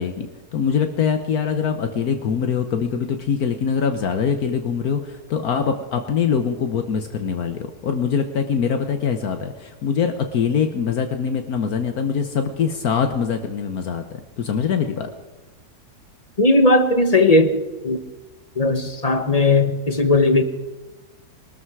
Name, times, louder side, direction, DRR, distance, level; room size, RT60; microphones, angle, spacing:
voice 1, 0.0-15.1, left 6 dB, 70° left, 6 dB, 1.4 m, -23 dB
voice 2, 16.4-18.0 18.6-20.4, left 2 dB, 30° left, 9 dB, 0.9 m, -17 dB
22.0 x 13.5 x 4.8 m, 1.1 s
omnidirectional pair, 1.7 m